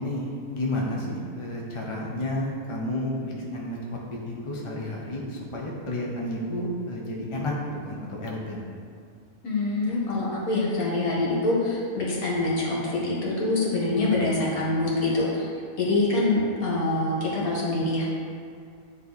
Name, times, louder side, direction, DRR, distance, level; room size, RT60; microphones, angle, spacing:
voice 1, 0.0-8.6, left 1 dB, 30° left, -3 dB, 0.6 m, -31 dB
voice 2, 9.4-15.5 15.8-18.2, left 2 dB, 65° left, -5 dB, 2.0 m, -25 dB
9.5 x 3.3 x 4.0 m, 2.4 s
omnidirectional pair, 1.6 m